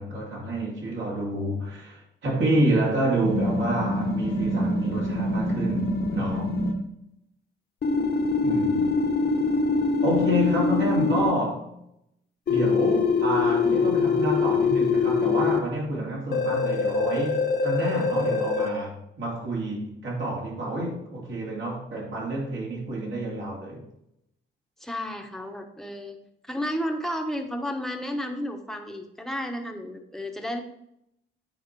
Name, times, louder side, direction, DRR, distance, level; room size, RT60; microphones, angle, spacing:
voice 1, 0.0-6.5 8.4-9.0 10.0-11.7 12.5-23.8, right 1 dB, 65° right, 3.0 m, -28 dB
sound 1, 3.2-6.7 7.8-11.3 12.5-15.6 16.3-18.7, left 3 dB, 50° left, 1.1 m, -24 dB
voice 2, 24.8-26.2 26.5-30.6, equal, ahead, 1.1 m, -32 dB
9.1 x 4.4 x 4.7 m
cardioid pair, 90°, 20 cm